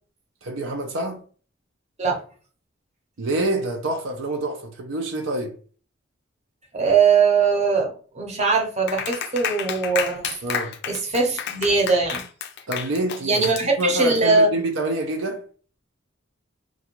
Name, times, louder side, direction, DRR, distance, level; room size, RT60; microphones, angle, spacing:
voice 1, 0.4-1.2 3.2-5.6 10.4-10.8 12.7-15.4, right 1 dB, 80° right, 0.5 m, -27 dB
voice 2, 6.7-10.3 10.9-12.2 13.2-14.5, right 4 dB, 35° right, 0.8 m, -20 dB
Clapping, 8.9-14.2, left 8 dB, 60° left, 0.4 m, -31 dB
2.5 x 2.3 x 2.8 m
head